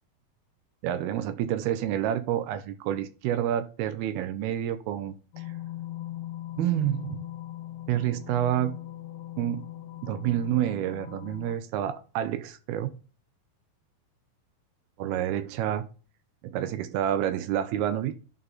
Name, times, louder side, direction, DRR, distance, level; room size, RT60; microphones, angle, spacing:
voice 1, 0.8-5.4 6.6-7.3 7.9-8.7 9.4-9.6 10.0-13.0 15.0-15.8 16.4-18.1, right 11 dB, 80° right, 2.5 m, -28 dB
sound 1, 5.3-11.6, left 14 dB, 65° left, 2.7 m, -40 dB
11.0 x 4.2 x 3.8 m
omnidirectional pair, 4.7 m